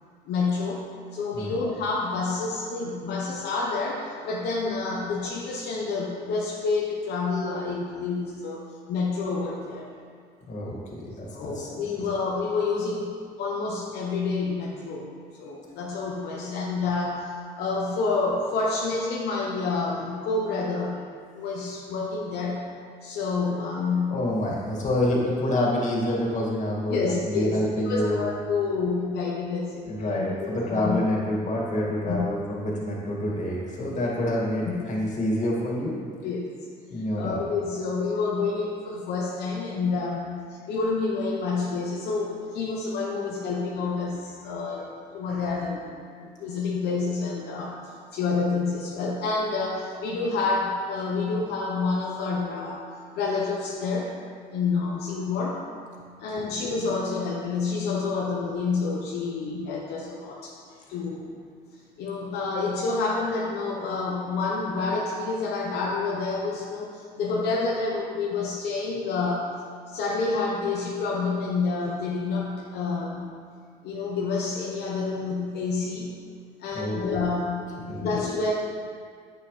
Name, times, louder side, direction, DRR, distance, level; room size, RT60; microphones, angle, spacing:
voice 1, 0.3-0.8 1.1-9.9 11.1-13.1 13.4-21.0 21.3-22.7 23.0-24.2 26.9-31.0 32.1-32.3 34.7-35.1 36.2-36.5 37.1-44.9 45.1-45.8 46.2-52.9 53.1-54.1 54.5-55.6 56.2-60.5 60.9-61.3 62.0-69.4 69.9-73.3 73.8-76.1 76.6-77.7 78.0-78.5, left 4 dB, 75° left, -3 dB, 1.0 m, -28 dB
voice 2, 10.5-11.7 24.1-28.2 29.9-36.0 36.9-37.4 76.7-77.0 77.9-78.1, left 1 dB, 45° left, -3 dB, 2.2 m, -27 dB
9.2 x 8.0 x 3.3 m, 2.1 s
cardioid pair, 110°, 17 cm